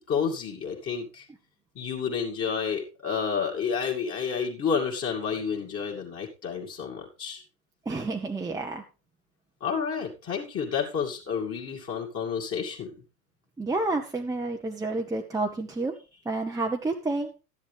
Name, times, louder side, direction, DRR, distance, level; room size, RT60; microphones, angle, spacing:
voice 1, 0.1-1.3 1.8-7.4 9.6-12.9, left 6 dB, 25° left, -1 dB, 2.3 m, -30 dB
voice 2, 7.9-8.8 13.6-15.9 16.2-17.3, right 2 dB, 5° right, 1 dB, 0.8 m, -29 dB
12.5 x 10.5 x 3.4 m, 0.31 s
hypercardioid pair, 95°, 49 cm